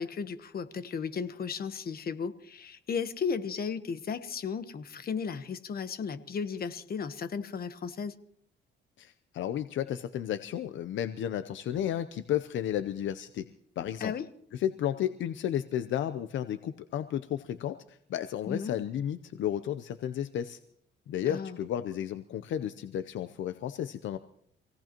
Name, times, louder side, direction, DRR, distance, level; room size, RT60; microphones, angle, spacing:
voice 1, 0.0-8.2 14.0-14.3 18.5-18.8 21.2-21.6, left 6 dB, 50° left, 11 dB, 1.2 m, -35 dB
voice 2, 9.0-13.5 13.8-14.1 14.5-20.6 21.1-24.2, left 10 dB, 75° left, 10 dB, 0.7 m, -33 dB
27.0 x 17.5 x 3.0 m, 0.66 s
cardioid pair, 90°, 20 cm